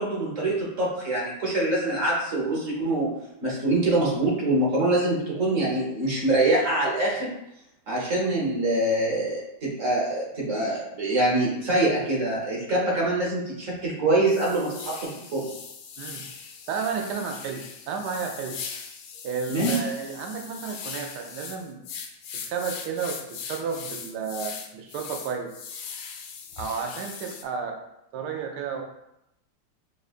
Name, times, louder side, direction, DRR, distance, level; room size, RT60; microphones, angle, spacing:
voice 1, 0.0-3.1 3.4-7.3 7.9-15.5 19.5-19.8, right 2 dB, 50° right, -5 dB, 1.4 m, -24 dB
sound 1, 13.1-13.2 13.7-13.8 14.3-27.4, left 6 dB, 80° left, 1.2 m, -39 dB
voice 2, 16.7-18.6 19.2-21.8 22.3-25.5 26.6-27.8 28.1-28.8, right 6 dB, 80° right, 2 dB, 1.1 m, -32 dB
6.3 x 2.2 x 2.4 m, 0.83 s
omnidirectional pair, 1.8 m